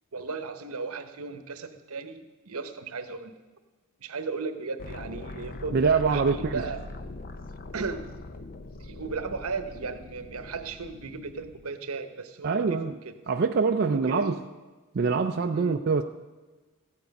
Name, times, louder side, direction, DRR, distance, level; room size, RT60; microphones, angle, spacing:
voice 1, 0.1-3.3 4.0-6.8 7.7-8.1 8.8-13.0 13.8-14.3 15.5-15.7, right 4 dB, 75° right, 9 dB, 0.9 m, -36 dB
sound 1, 4.8-11.6, left 2 dB, 40° left, 0.6 m, -41 dB
voice 2, 5.7-6.6 12.4-13.0 13.3-14.4 14.9-16.0, right 4 dB, 45° right, 5 dB, 0.4 m, -24 dB
14.0 x 9.4 x 5.3 m, 1.3 s
head